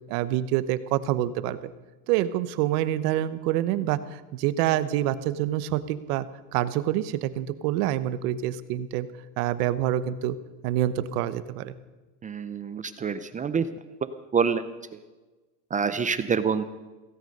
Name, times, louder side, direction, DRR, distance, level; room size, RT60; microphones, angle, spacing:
voice 1, 0.1-1.6 2.1-6.2 6.5-9.1 9.4-10.4 10.6-11.7, right 13 dB, 75° right, 14 dB, 1.1 m, -26 dB
voice 2, 12.2-13.7 14.3-14.6 15.7-16.6, right 6 dB, 20° right, 12 dB, 0.5 m, -26 dB
17.0 x 16.0 x 5.4 m, 1.2 s
supercardioid pair, 140°, 45 cm